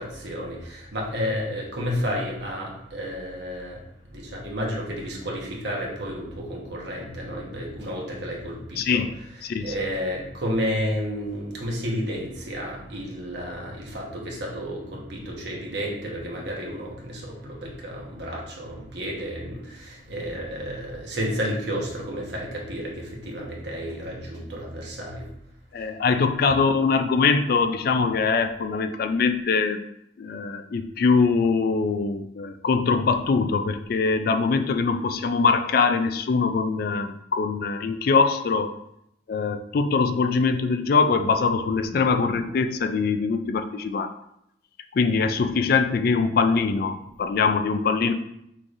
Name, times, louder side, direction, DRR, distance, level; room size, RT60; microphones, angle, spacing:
voice 1, 0.0-3.8 4.1-9.0 9.4-25.3, equal, 70° right, -2 dB, 1.2 m, -31 dB
voice 2, 8.8-9.1 9.4-9.7 25.7-29.8 30.2-38.7 39.3-44.1 44.9-48.1, left 4 dB, 55° left, 8 dB, 0.3 m, -23 dB
5.9 x 3.2 x 2.5 m, 0.78 s
head